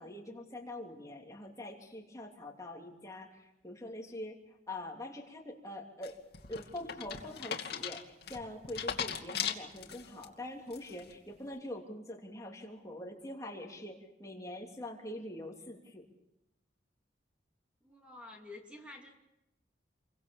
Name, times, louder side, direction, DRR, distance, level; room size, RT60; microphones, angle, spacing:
voice 1, 0.0-6.2 6.5-16.1, left 1 dB, 20° left, 0 dB, 3.1 m, -44 dB
sound 1, 6.0-10.2 10.7-11.1, left 8 dB, 55° left, 2.5 m, -38 dB
voice 2, 17.8-19.1, left 2 dB, 5° right, 1 dB, 3.0 m, -49 dB
29.0 x 24.0 x 7.2 m, 0.87 s
head